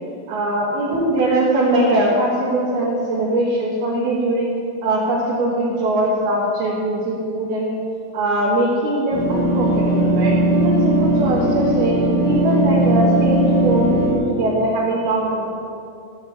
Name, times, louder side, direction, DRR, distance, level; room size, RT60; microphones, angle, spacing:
voice 1, 0.3-4.5 4.8-7.8 8.1-15.4, right 1 dB, 60° right, -5 dB, 3.3 m, -21 dB
sound 1, 9.1-14.1, right 1 dB, 85° left, 5.8 m, -18 dB
15.5 x 7.3 x 8.7 m, 2.4 s
omnidirectional pair, 5.9 m